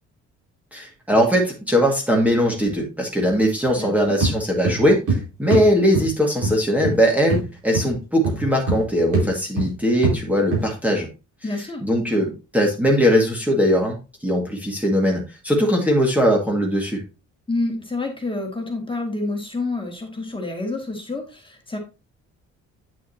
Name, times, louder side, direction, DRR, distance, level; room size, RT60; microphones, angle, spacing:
voice 1, 0.7-11.1 11.8-17.0, equal, 5° right, 0 dB, 1.9 m, -20 dB
voice 2, 3.8-4.2 11.4-11.8 17.5-21.8, left 2 dB, 15° left, 2 dB, 2.1 m, -28 dB
sound 1, 4.2-4.4 4.6-5.2 5.5-5.7 5.9-6.1 6.4-6.6 6.8-7.0 7.3-7.5 7.7-7.9 8.2-8.9 9.1-9.3 9.6-9.7 10.0-10.2 10.5-10.6, right 3 dB, 85° right, 4.5 m, -22 dB
9.1 x 6.2 x 2.8 m, 0.29 s
cardioid pair, 90°, 30 cm